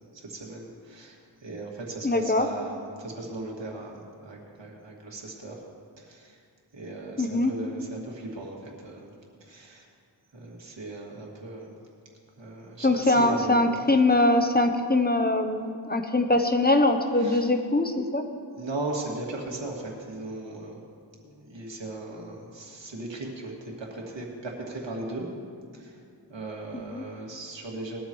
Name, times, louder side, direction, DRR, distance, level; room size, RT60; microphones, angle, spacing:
voice 1, 0.1-1.2 1.4-5.6 6.0-6.4 6.7-9.1 9.4-9.9 10.3-11.7 12.4-13.7 17.2-17.5 18.6-20.8 21.2-25.3 25.7-26.0 26.3-28.0, right 2 dB, 80° right, -2 dB, 2.5 m, -37 dB
voice 2, 2.0-2.5 7.2-7.5 12.8-18.2 26.9-27.0, left 2 dB, 20° left, 5 dB, 0.9 m, -22 dB
21.0 x 13.0 x 3.2 m, 2.3 s
wide cardioid pair, 95°, 43 cm